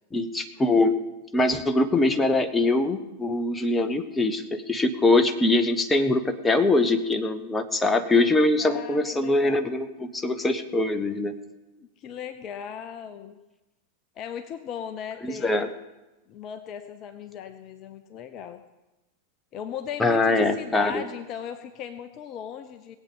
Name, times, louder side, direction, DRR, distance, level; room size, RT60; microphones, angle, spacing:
voice 1, 0.1-0.9 1.3-11.3 15.2-15.7 20.0-21.0, left 2 dB, 10° left, 8 dB, 0.9 m, -23 dB
voice 2, 8.6-9.7 11.8-13.4 14.2-15.7 16.3-18.6 19.5-23.0, left 8 dB, 35° left, 10 dB, 0.6 m, -37 dB
19.0 x 8.3 x 5.5 m, 1.0 s
figure-of-eight pair, 90°, 0 cm